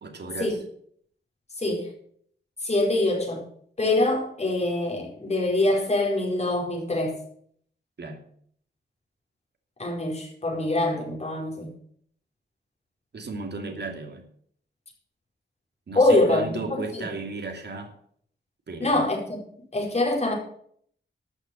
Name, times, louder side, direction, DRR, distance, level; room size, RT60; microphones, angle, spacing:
voice 1, 0.0-0.6 8.0-8.2 13.1-14.3 15.9-17.9 18.7-19.1, right 3 dB, 65° right, 4 dB, 2.5 m, -34 dB
voice 2, 1.6-1.9 2.6-3.4 3.8-7.2 9.8-11.7 15.9-17.1 18.8-19.4 19.7-20.3, left 2 dB, 35° left, -1 dB, 4.7 m, -24 dB
13.0 x 6.2 x 8.5 m, 0.63 s
wide cardioid pair, 115°, 19 cm